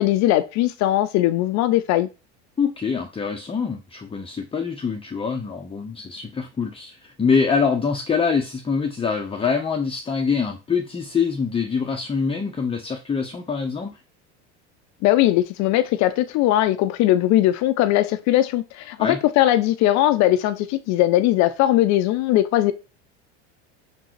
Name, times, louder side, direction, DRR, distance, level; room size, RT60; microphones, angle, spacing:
voice 1, 0.0-2.1 15.0-22.7, left 14 dB, 50° left, 0.7 m, -19 dB
voice 2, 2.6-14.0 19.0-19.2, left 5 dB, 15° left, 0.9 m, -24 dB
6.1 x 3.9 x 4.6 m
supercardioid pair, 100°, 35 cm